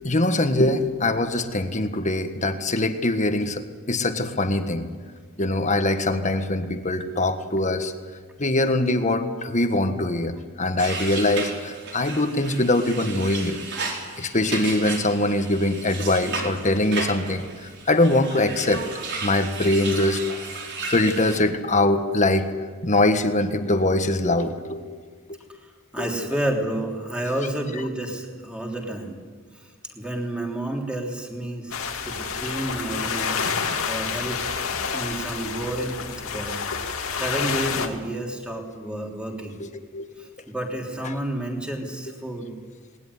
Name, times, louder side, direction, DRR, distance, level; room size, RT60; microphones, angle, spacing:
voice 1, 0.0-4.9 5.4-7.9 8.4-13.6 14.2-17.4 17.9-18.8 19.2-20.2 20.8-22.5 22.8-24.9 25.3-25.4 26.0-26.1 39.6-40.1, left 2 dB, 35° left, 8 dB, 1.6 m, -23 dB
sound 1, 10.8-21.4, right 3 dB, 55° right, 4.7 m, -34 dB
voice 2, 25.9-29.2 29.5-33.4 33.9-34.4 34.9-36.6 37.1-39.6 40.2-42.5, right 1 dB, 5° right, 1 dB, 3.3 m, -30 dB
sound 2, 31.7-37.9, left 5 dB, 85° left, 2.3 m, -28 dB
19.5 x 19.5 x 9.7 m, 1.5 s
head